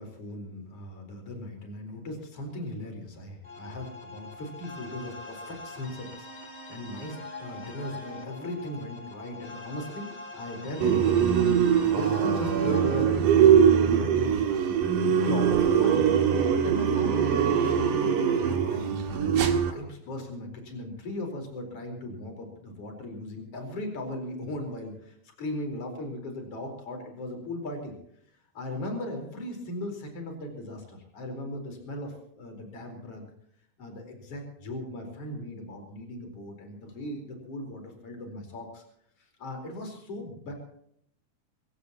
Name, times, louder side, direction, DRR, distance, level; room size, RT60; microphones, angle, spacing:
voice 1, 0.0-14.8 15.0-16.1 16.5-27.9 28.5-33.3 33.8-38.8 39.2-40.5, left 1 dB, 45° left, 3 dB, 5.4 m, -38 dB
sound 1, 3.4-13.0, left 2 dB, 20° left, 2.5 m, -43 dB
sound 2, 10.8-19.7, right 8 dB, 85° right, 3.2 m, -22 dB
24.0 x 17.5 x 3.0 m, 0.67 s
omnidirectional pair, 3.6 m